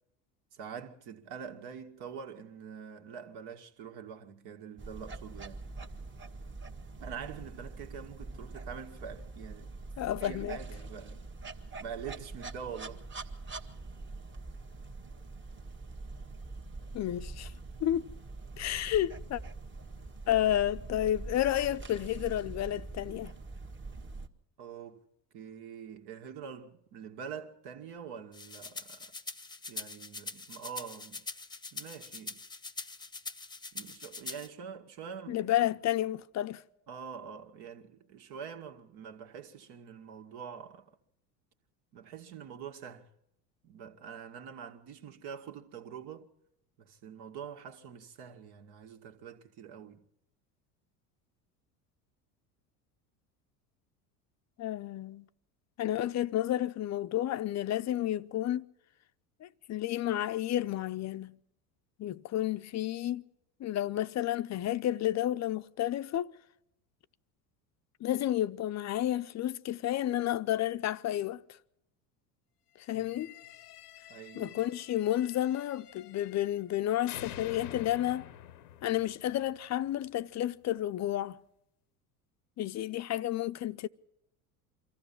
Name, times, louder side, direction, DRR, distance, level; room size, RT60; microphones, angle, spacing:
voice 1, 0.5-5.7 7.0-9.8 10.2-11.2 11.8-13.1 24.6-25.0 25.3-29.1 29.7-31.3 31.7-32.4 33.7-35.7 36.9-40.9 41.9-43.1 43.6-46.3 46.8-50.1 72.9-73.1 74.1-74.6, right 7 dB, 60° right, 2.2 m, -45 dB
sound 1, 4.8-24.3, right 3 dB, 25° right, 1.7 m, -44 dB
voice 2, 10.0-10.6 16.9-17.5 17.8-18.1 18.6-19.4 20.3-23.3 35.3-36.6 54.6-55.3 55.8-58.7 59.4-61.4 62.0-63.2 63.6-66.3 68.0-71.4 72.8-73.4 74.4-78.3 78.8-81.4 82.6-83.9, left 12 dB, 35° left, 0.7 m, -31 dB
sound 2, 28.3-34.5, left 3 dB, 10° left, 1.1 m, -43 dB
sound 3, 72.9-76.8 77.1-80.1, left 11 dB, 85° left, 0.9 m, -49 dB
24.5 x 14.5 x 7.2 m
hypercardioid pair, 80°, 46 cm